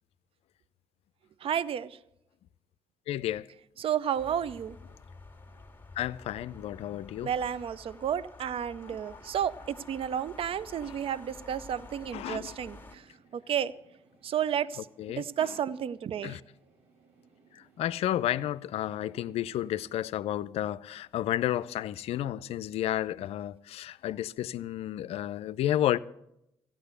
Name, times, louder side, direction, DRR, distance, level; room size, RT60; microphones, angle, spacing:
voice 1, 1.4-2.0 3.8-4.8 7.2-13.1 13.3-13.7 14.2-14.9 15.2-16.4, right 9 dB, 60° right, 0.6 m, -32 dB
voice 2, 3.1-3.5 6.0-7.3 8.9-9.0 12.1-12.5 15.0-15.2 16.2-16.4 17.5-26.0, left 12 dB, 70° left, 0.4 m, -31 dB
sound 1, 4.2-13.0, left 3 dB, 20° left, 1.8 m, -50 dB
sound 2, 8.9-20.1, right 4 dB, 80° right, 2.6 m, -62 dB
15.0 x 9.0 x 6.7 m
hypercardioid pair, 50°, 11 cm